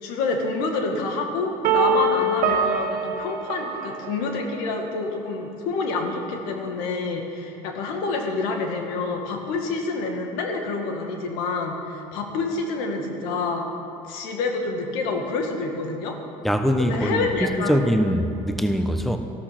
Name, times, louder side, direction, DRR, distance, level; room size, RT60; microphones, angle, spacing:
voice 1, 0.0-13.7 14.1-16.2 16.8-17.8, left 3 dB, 80° left, 3 dB, 2.0 m, -27 dB
sound 1, 1.6-4.6, right 3 dB, 65° right, 1.4 m, -24 dB
voice 2, 16.4-19.2, equal, ahead, 6 dB, 1.0 m, -22 dB
13.5 x 12.0 x 6.1 m, 2.7 s
supercardioid pair, 95°, 15 cm